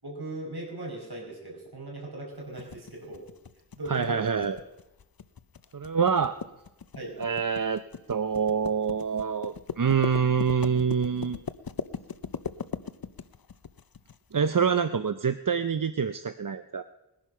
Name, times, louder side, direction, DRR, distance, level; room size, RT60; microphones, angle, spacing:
voice 1, 0.0-3.2 3.8-4.5 7.0-7.1, right 2 dB, 70° right, -2 dB, 5.5 m, -38 dB
sound 1, 2.6-14.2, left 6 dB, 60° left, 0.7 m, -38 dB
voice 2, 3.9-4.6 5.7-6.4 7.2-7.8 8.1-11.4 14.3-16.8, right 6 dB, 55° right, 11 dB, 0.6 m, -26 dB
20.5 x 10.5 x 5.6 m, 0.91 s
wide cardioid pair, 40°, 40 cm